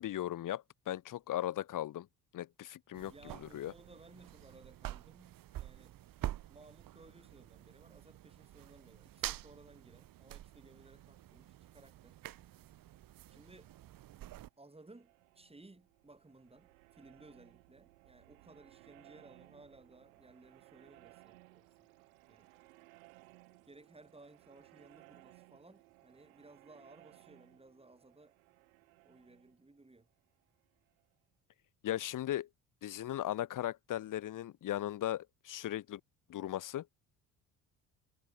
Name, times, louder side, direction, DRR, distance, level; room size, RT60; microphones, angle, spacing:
voice 1, 0.0-2.1 2.3-3.1 3.5-3.7 31.8-32.5 32.8-36.0 36.3-36.8, left 13 dB, 50° left, 1.4 m, -37 dB
voice 2, 2.9-6.0 6.5-12.2 13.3-13.7 14.6-21.9 22.3-22.5 23.7-28.3 29.0-30.1, right 2 dB, 15° right, 6.9 m, -59 dB
sound 1, 2.9-14.5, right 13 dB, 50° right, 1.7 m, -47 dB
sound 2, 14.5-31.1, right 22 dB, 75° right, 6.8 m, -62 dB
hypercardioid pair, 55°, 42 cm